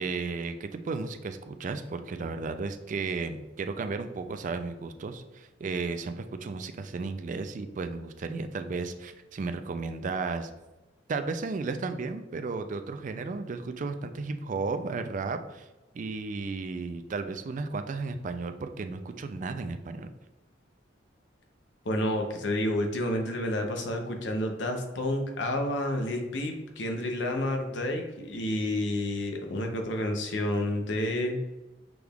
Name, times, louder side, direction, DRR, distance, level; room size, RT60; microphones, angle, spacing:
voice 1, 0.0-10.5 11.1-15.7 15.9-20.1, right 4 dB, 45° right, 8 dB, 0.3 m, -34 dB
voice 2, 21.8-31.4, left 1 dB, 75° left, 3 dB, 0.7 m, -30 dB
6.1 x 2.4 x 3.4 m, 1.1 s
head